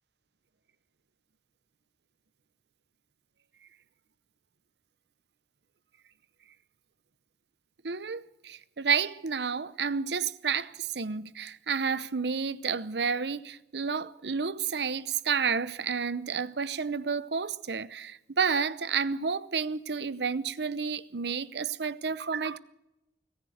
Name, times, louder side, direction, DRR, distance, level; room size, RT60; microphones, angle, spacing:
voice 1, 7.8-22.6, right 6 dB, 70° right, 0.8 m, -30 dB
23.0 x 15.0 x 7.9 m
head